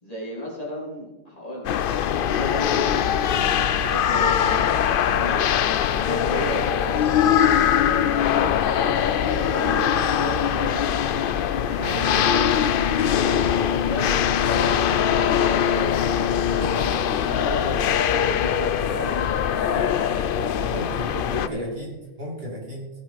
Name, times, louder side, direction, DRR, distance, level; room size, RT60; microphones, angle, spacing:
voice 1, 0.0-1.8 2.1-10.8 11.6-16.0 16.4-21.7, equal, 30° left, -4 dB, 3.3 m, -35 dB
sound 1, 1.6-21.5, left 9 dB, 60° left, 0.6 m, -22 dB
voice 2, 20.6-22.9, left 1 dB, 50° right, -3 dB, 3.0 m, -34 dB
17.5 x 7.8 x 4.1 m, 1.0 s
omnidirectional pair, 1.3 m